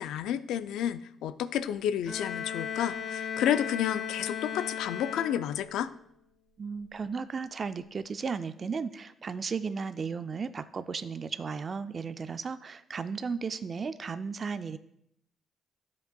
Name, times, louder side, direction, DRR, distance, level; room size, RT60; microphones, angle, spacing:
voice 1, 0.0-5.9, left 10 dB, 85° left, 13 dB, 0.3 m, -31 dB
Bowed string instrument, 2.1-5.8, left 7 dB, 50° left, 1.2 m, -36 dB
voice 2, 6.6-14.8, right 5 dB, 40° right, 12 dB, 0.3 m, -35 dB
12.0 x 5.2 x 2.3 m, 0.74 s
cardioid pair, 90°, 0 cm